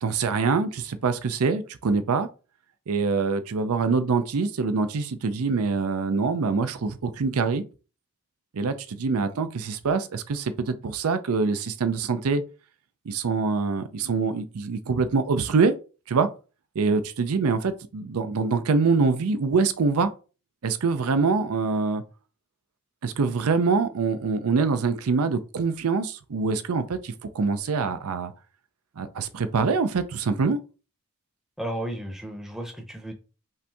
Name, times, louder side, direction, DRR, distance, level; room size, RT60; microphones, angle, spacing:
voice 1, 0.0-2.3 2.9-7.6 8.5-12.4 13.1-15.7 16.1-16.3 16.8-20.1 20.6-22.0 23.0-28.3 29.0-30.6, right 4 dB, 85° right, 0.5 m, -24 dB
voice 2, 31.6-33.1, right 1 dB, ahead, 0.7 m, -33 dB
5.5 x 2.6 x 3.4 m
head